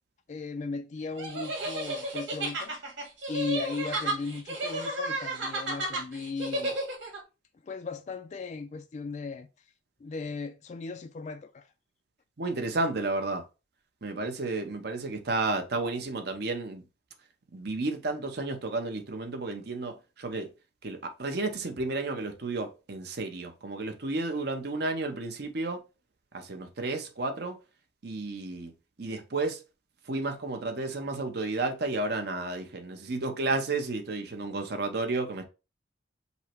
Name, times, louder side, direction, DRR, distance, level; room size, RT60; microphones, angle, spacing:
voice 1, 0.3-2.7 3.3-6.8 7.6-9.5 10.0-11.7, left 4 dB, 40° left, 0.3 m, -37 dB
sound 1, 1.2-7.2, right 2 dB, 80° right, 2.0 m, -32 dB
voice 2, 12.4-13.4 14.0-16.8 17.5-20.5 20.8-25.8 26.3-27.6 28.0-28.7 29.0-29.6 30.1-35.4, right 3 dB, 60° right, 0.8 m, -32 dB
5.4 x 2.1 x 4.4 m
head